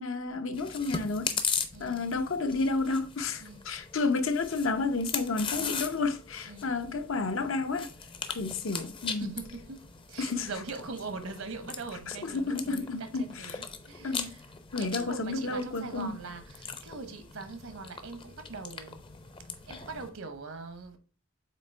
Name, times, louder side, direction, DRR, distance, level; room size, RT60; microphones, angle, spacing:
voice 1, 0.0-1.3 1.8-7.9 8.3-9.3 10.2-10.5 12.1-13.6 14.0-14.4 14.7-16.2, left 3 dB, 65° left, 0.7 m, -31 dB
Chewing mastication, 0.5-20.1, left 5 dB, 25° left, 0.6 m, -39 dB
voice 2, 1.7-2.1 3.4-3.7 6.5-6.8 9.0-14.4 14.8-19.0 19.6-21.0, right 3 dB, 75° right, 1.1 m, -42 dB
7.7 x 2.9 x 4.4 m
head